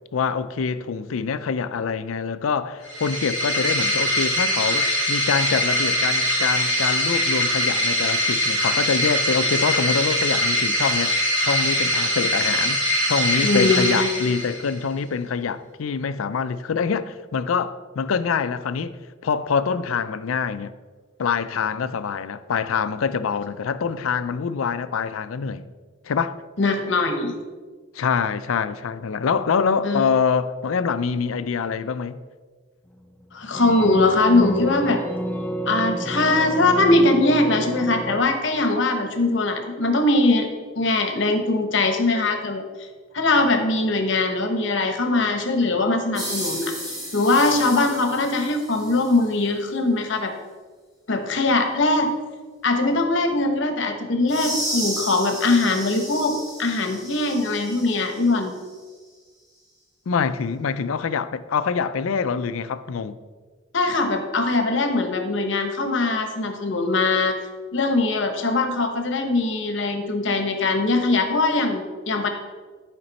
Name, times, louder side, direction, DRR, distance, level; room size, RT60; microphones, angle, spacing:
voice 1, 0.1-19.0 19.2-20.7 21.2-25.7 26.0-26.3 27.9-32.2 60.1-63.1, left 6 dB, 80° left, 0.4 m, -25 dB
sound 1, 2.8-14.8, equal, 65° right, 2.8 m, -22 dB
voice 2, 13.4-14.1 26.6-27.3 29.8-30.0 33.3-35.0 35.7-40.5 40.8-42.6 43.1-46.7 47.1-50.3 51.1-52.1 52.6-58.5 63.7-67.3 67.7-72.3, left 2 dB, 60° left, 1.0 m, -21 dB
sound 2, 32.8-38.2, right 1 dB, 10° left, 0.6 m, -30 dB
sound 3, 46.2-49.2 54.3-58.3, equal, 20° right, 1.8 m, -33 dB
11.0 x 5.2 x 4.1 m
head